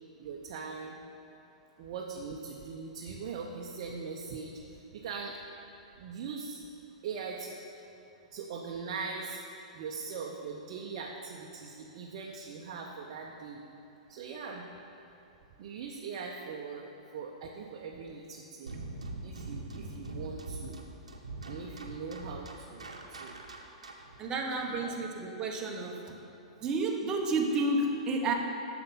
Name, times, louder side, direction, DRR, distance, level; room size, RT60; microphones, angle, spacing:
voice 1, 0.2-1.0 1.8-5.4 6.0-6.6 7.0-7.5 8.3-9.4 9.7-13.6 14.1-14.7 15.6-18.8 19.2-20.8 21.4-23.4 24.7-25.0, right 5 dB, 50° right, -1 dB, 0.9 m, -41 dB
sound 1, 18.7-24.2, right 2 dB, 85° right, 1.1 m, -42 dB
voice 2, 24.2-26.2 26.6-28.3, right 2 dB, 20° right, 0 dB, 1.2 m, -31 dB
9.6 x 7.0 x 5.5 m, 2.7 s
figure-of-eight pair, 110°, 3 cm